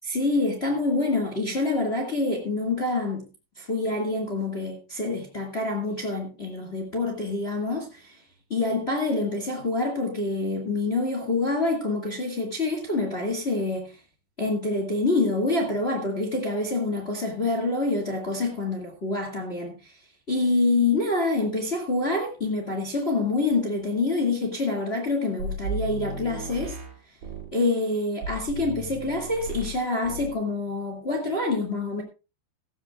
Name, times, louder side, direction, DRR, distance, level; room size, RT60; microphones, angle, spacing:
voice 1, 0.0-3.3 3.6-8.1 8.5-13.9 14.4-20.0 20.3-26.8 27.5-32.0, left 2 dB, 55° left, 0.7 m, -26 dB
sound 1, 25.4-27.5 28.2-29.8 30.0-30.4, right 2 dB, 55° right, 4.3 m, -34 dB
16.0 x 15.0 x 2.4 m
omnidirectional pair, 5.2 m